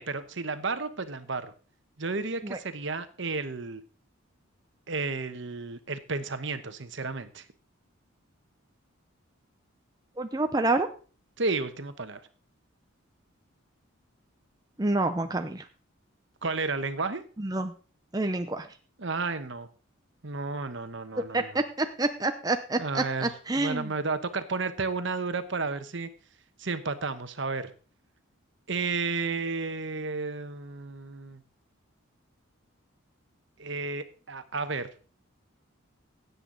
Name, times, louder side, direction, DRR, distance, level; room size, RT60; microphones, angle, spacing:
voice 1, 0.0-1.5 2.0-3.8 4.9-7.4 11.4-12.2 16.4-17.2 19.0-19.7 20.2-21.6 22.8-26.1 26.6-27.7 28.7-31.4 33.6-34.9, right 3 dB, 60° right, 10 dB, 1.1 m, -32 dB
voice 2, 10.2-10.9 14.8-15.6 17.4-17.7 18.1-18.7 21.3-23.9, right 2 dB, 20° right, 7 dB, 0.6 m, -28 dB
16.5 x 8.1 x 4.0 m, 0.38 s
head